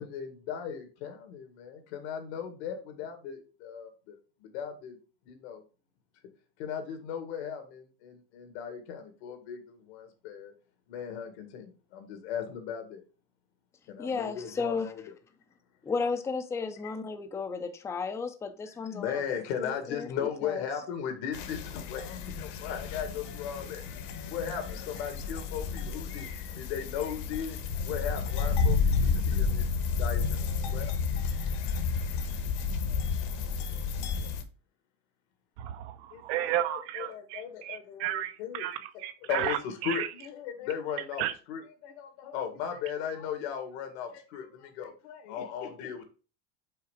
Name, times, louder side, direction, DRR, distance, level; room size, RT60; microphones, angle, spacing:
voice 1, 0.0-4.2 4.4-5.0 5.3-5.6 6.6-10.5 10.9-13.0 13.9-14.9 18.9-22.0 22.4-23.8 24.3-27.6 27.8-30.5 30.7-30.9 36.1-36.2 36.7-38.7 39.2-41.2 41.5-46.0, left 8 dB, 80° left, 2.1 m, -37 dB
voice 2, 14.0-14.9 15.8-20.6, left 5 dB, 10° left, 0.5 m, -34 dB
sound 1, 21.3-34.4, left 5 dB, 55° left, 1.2 m, -31 dB
voice 3, 35.6-40.1 41.2-41.3, right 12 dB, 75° right, 0.9 m, -33 dB
5.7 x 4.5 x 5.0 m
cardioid pair, 160°, 33 cm